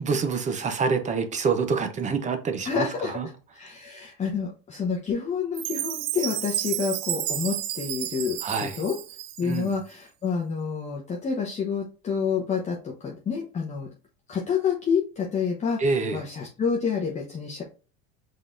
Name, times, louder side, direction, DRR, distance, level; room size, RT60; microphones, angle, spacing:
voice 1, 0.0-3.3 8.4-8.8 9.4-9.7 15.8-16.2, right 5 dB, 25° right, 0.8 m, -26 dB
voice 2, 2.6-3.1 3.5-9.0 9.4-13.9 14.3-17.6, left 6 dB, 25° left, 0.9 m, -28 dB
Chime, 5.5-9.7, right 13 dB, 80° right, 0.6 m, -31 dB
5.3 x 3.8 x 2.6 m
supercardioid pair, 120°, 29 cm